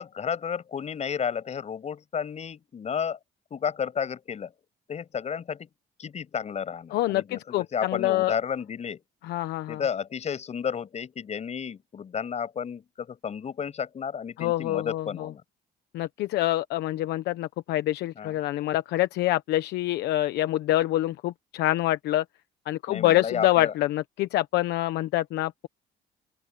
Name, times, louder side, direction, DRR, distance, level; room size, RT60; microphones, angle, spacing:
voice 1, 0.0-3.2 3.5-4.5 4.9-5.7 6.0-9.0 9.7-15.4 18.1-18.4 22.9-23.7, left 7 dB, 40° left, 6.8 m, -32 dB
voice 2, 6.9-8.4 9.3-9.8 14.4-15.3 15.9-22.2 22.7-25.7, left 15 dB, 80° left, 1.1 m, -26 dB
open air
cardioid pair, 110°, 17 cm